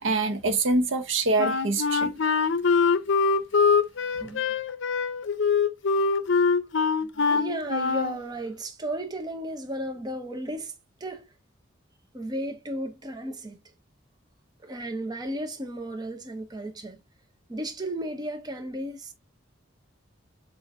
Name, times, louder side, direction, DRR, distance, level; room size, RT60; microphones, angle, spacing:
voice 1, 0.0-2.1, right 3 dB, 70° right, 0.8 m, -25 dB
Wind instrument woodwind instrument, 1.4-8.2, left 5 dB, 65° left, 0.5 m, -23 dB
voice 2, 7.0-10.7 11.0-11.3 12.1-13.6 14.6-17.0 17.5-19.1, right 1 dB, 20° right, 0.6 m, -34 dB
7.2 x 2.5 x 2.5 m
head